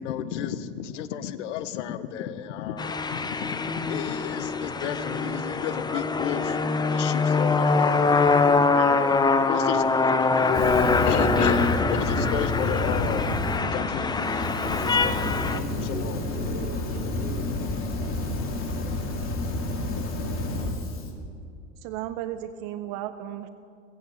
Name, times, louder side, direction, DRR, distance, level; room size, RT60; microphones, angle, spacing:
voice 1, 0.0-6.6 6.9-8.2 8.7-9.2 9.5-9.8 10.4-13.3 13.6-15.4 15.8-16.4, left 10 dB, 85° left, 13 dB, 0.9 m, -33 dB
sound 1, 2.8-15.6, left 4 dB, 10° left, 0.6 m, -24 dB
sound 2, 9.6-17.6, right 2 dB, 80° right, 2.1 m, -40 dB
Fire, 10.5-13.6 14.0-21.1, left 2 dB, 35° left, 2.6 m, -30 dB
voice 2, 15.0-18.3, right 3 dB, 25° right, -2 dB, 3.8 m, -45 dB
voice 3, 21.8-23.5, right 12 dB, 65° right, 10 dB, 0.8 m, -34 dB
17.5 x 8.3 x 7.7 m, 2.3 s
supercardioid pair, 105°, 35 cm